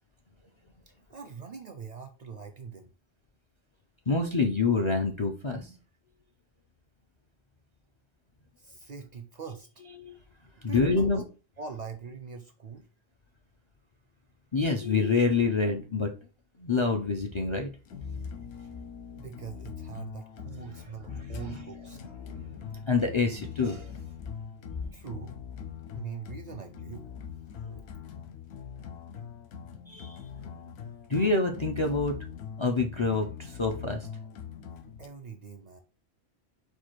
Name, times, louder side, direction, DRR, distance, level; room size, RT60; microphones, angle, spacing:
voice 1, 0.9-2.9 8.6-9.7 10.7-11.3 11.6-12.9 19.1-22.0 24.9-25.3 25.9-27.0 35.0-35.8, right 6 dB, 55° right, 7 dB, 0.5 m, -42 dB
voice 2, 4.1-5.7 10.0-10.2 10.6-11.2 14.5-16.1 16.6-17.7 21.1-21.6 22.2-24.0 27.6-27.8 29.9-30.3 31.1-32.2 32.6-34.1, left 4 dB, 45° left, 3 dB, 0.4 m, -27 dB
sound 1, 17.9-35.1, left 7 dB, 75° left, 0.8 m, -43 dB
4.4 x 2.4 x 4.4 m, 0.33 s
omnidirectional pair, 1.1 m